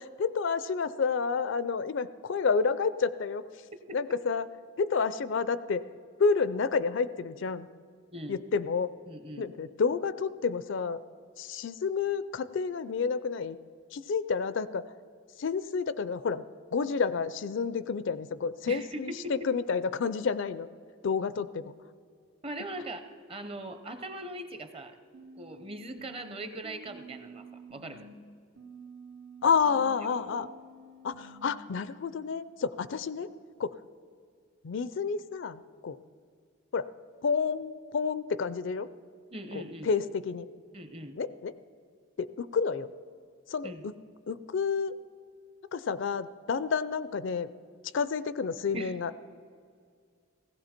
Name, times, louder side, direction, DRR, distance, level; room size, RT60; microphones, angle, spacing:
voice 1, 0.0-3.4 3.9-4.5 4.8-5.8 6.2-7.7 8.3-8.9 9.4-11.0 11.4-13.6 13.9-14.9 15.4-16.4 16.7-20.7 21.0-21.7 29.4-30.5 31.0-33.3 33.6-33.8 34.6-36.0 36.7-36.9 37.2-38.9 39.5-40.5 41.2-41.5 42.2-42.9 43.5-43.9 44.3-45.0 45.7-47.5 47.9-49.2, left 5 dB, 60° left, 15 dB, 0.4 m, -30 dB
voice 2, 8.1-8.5 9.1-9.5 18.7-19.5 22.4-25.0 25.4-28.1 39.3-39.9 40.7-41.2 43.6-43.9 48.7-49.2, right 1 dB, 25° right, 9 dB, 0.7 m, -40 dB
sound 1, 25.1-28.1 28.6-31.6, right 2 dB, 90° right, 1.6 m, -49 dB
17.0 x 15.5 x 4.3 m, 2.2 s
head